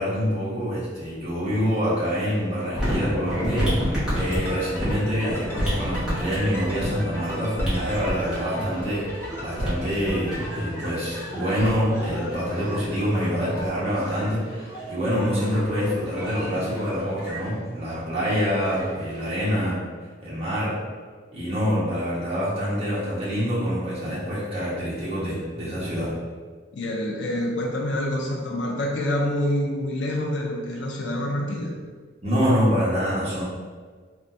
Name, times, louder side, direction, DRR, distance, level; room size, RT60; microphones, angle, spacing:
voice 1, 0.0-19.8 20.2-20.8 21.3-26.1 32.2-33.4, equal, 35° right, -9 dB, 1.0 m, -26 dB
sound 1, 2.7-19.5, equal, 5° right, 0.9 m, -31 dB
sound 2, 4.2-10.5, equal, 15° left, 0.5 m, -39 dB
voice 2, 26.7-31.8, left 1 dB, 85° left, 1 dB, 0.5 m, -27 dB
3.5 x 2.2 x 2.6 m, 1.5 s
head